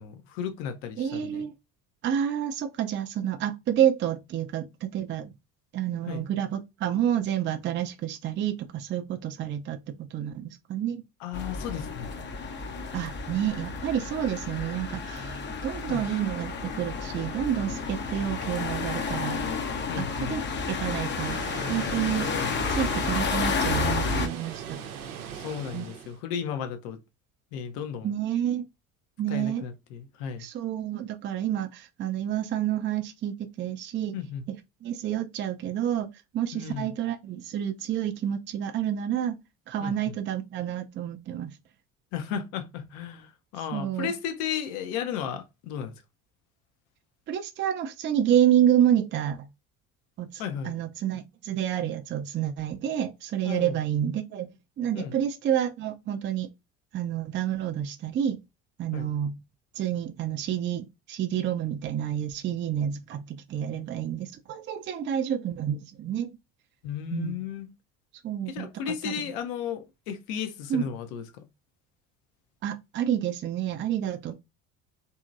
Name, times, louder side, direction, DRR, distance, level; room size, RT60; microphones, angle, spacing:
voice 1, 0.0-1.5 6.1-6.3 11.2-12.1 15.9-16.0 19.9-20.3 25.3-27.0 27.5-28.1 29.3-30.5 34.1-34.4 36.5-36.9 39.8-40.1 42.1-45.9 50.4-50.8 53.4-53.8 54.9-55.2 58.9-59.1 66.8-67.7 68.5-71.4, left 8 dB, 60° left, 0.8 m, -34 dB
voice 2, 1.0-1.5 2.0-5.3 5.7-9.8 10.1-11.0 12.9-19.4 20.0-20.4 20.7-22.3 22.7-24.8 25.7-25.9 28.0-28.6 29.2-29.6 30.4-34.2 34.5-34.6 34.8-36.1 36.3-39.4 39.7-41.5 43.7-44.1 47.3-49.5 50.2-54.5 54.8-56.5 56.9-58.4 58.8-59.4 59.8-66.3 67.1-67.4 68.2-69.3 70.7-70.8 72.6-74.3, right 10 dB, 25° right, 0.4 m, -29 dB
sound 1, 11.3-24.3, left 4 dB, 25° left, 0.6 m, -31 dB
Water, 21.2-26.2, right 8 dB, 80° right, 0.6 m, -40 dB
2.8 x 2.8 x 2.4 m
figure-of-eight pair, 60°, 43 cm